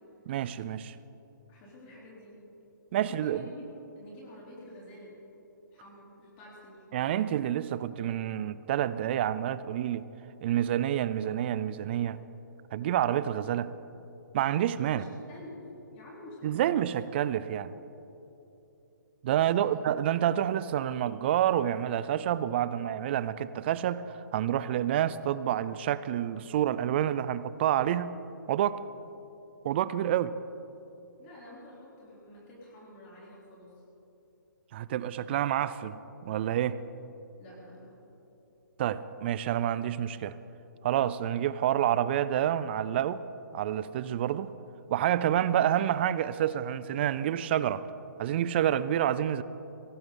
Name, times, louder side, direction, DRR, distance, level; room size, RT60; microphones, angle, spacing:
voice 1, 0.3-1.0 2.9-3.4 6.9-10.0 10.4-12.2 12.7-13.7 14.3-15.0 16.4-17.7 19.2-28.2 28.5-28.8 29.6-30.3 34.7-36.8 38.8-40.4 40.8-43.2 43.5-44.5 44.9-47.8 48.2-49.4, right 11 dB, 30° right, 16 dB, 0.4 m, -28 dB
voice 2, 1.5-2.4 3.0-5.1 5.7-6.8 14.8-15.6 15.9-16.8 19.3-20.0 31.2-33.7 37.4-38.0, left 1 dB, 30° left, -5 dB, 3.4 m, -49 dB
17.0 x 15.5 x 3.8 m, 3.0 s
hypercardioid pair, 150°, 11 cm